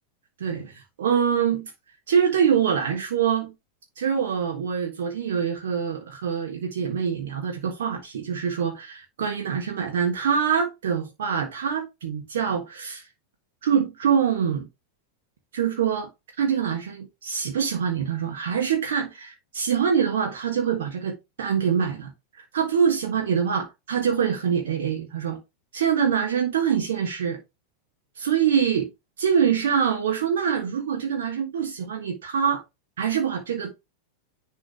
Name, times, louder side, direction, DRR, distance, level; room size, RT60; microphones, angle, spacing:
voice 1, 1.0-1.7 2.1-3.5 4.0-13.0 13.6-14.7 15.5-16.1 16.4-22.1 22.5-25.4 25.7-27.4 28.2-28.9 29.2-32.6 33.0-33.7, right 7 dB, 60° right, 1.4 m, -24 dB
9.9 x 3.5 x 3.3 m
figure-of-eight pair, 90°, 0 cm